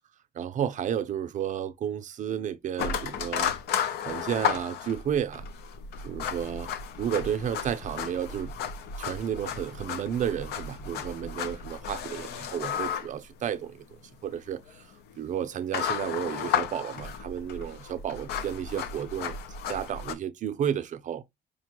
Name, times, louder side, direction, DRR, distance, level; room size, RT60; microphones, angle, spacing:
voice 1, 0.3-3.5 4.0-5.5 6.0-6.7 7.0-8.5 9.0-19.4 19.7-21.2, right 9 dB, 45° right, 0.4 m, -32 dB
sound 1, 2.8-20.1, left 7 dB, 75° left, 0.6 m, -34 dB
5.0 x 2.2 x 2.9 m
cardioid pair, 110°, 17 cm